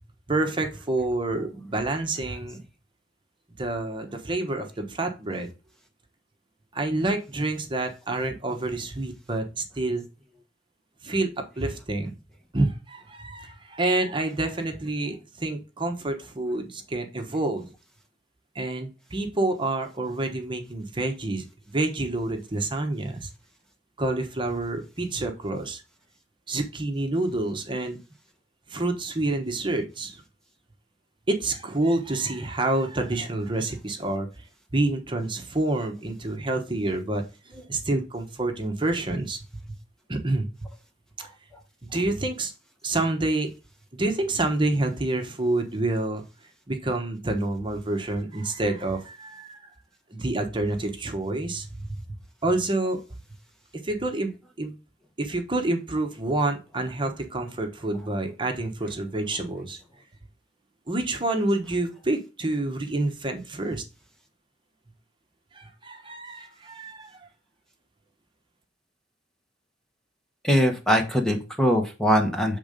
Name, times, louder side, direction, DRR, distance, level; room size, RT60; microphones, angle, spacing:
voice 1, 0.3-2.6 3.6-5.5 6.7-10.0 11.0-12.1 12.5-17.7 18.5-23.3 24.0-25.8 26.5-28.0 28.7-30.2 31.3-34.3 34.7-39.4 40.1-40.5 41.9-42.5 42.8-43.5 43.9-46.2 46.7-49.7 50.1-52.0 52.4-53.0 53.8-54.3 54.6-54.7 55.2-59.8 60.9-63.8 65.5-67.3, right 2 dB, 30° right, 5 dB, 1.1 m, -28 dB
voice 2, 70.4-72.6, equal, 5° left, 3 dB, 1.0 m, -22 dB
7.0 x 3.7 x 5.1 m, 0.30 s
head